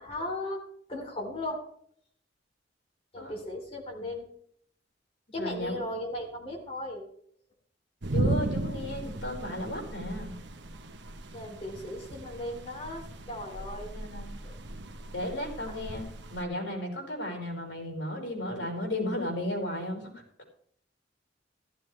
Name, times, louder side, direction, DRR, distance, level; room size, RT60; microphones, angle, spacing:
voice 1, 0.0-1.7 3.1-4.3 5.3-7.1 11.3-14.0 14.4-14.6 15.7-15.8, left 1 dB, 30° left, -1 dB, 3.4 m, -37 dB
voice 2, 5.4-5.8 8.1-10.3 13.9-14.3 15.1-20.1, left 1 dB, 75° left, 0 dB, 4.9 m, -34 dB
sound 1, 8.0-16.4, right 2 dB, 70° right, 1.0 m, -36 dB
14.5 x 13.0 x 3.3 m, 0.64 s
head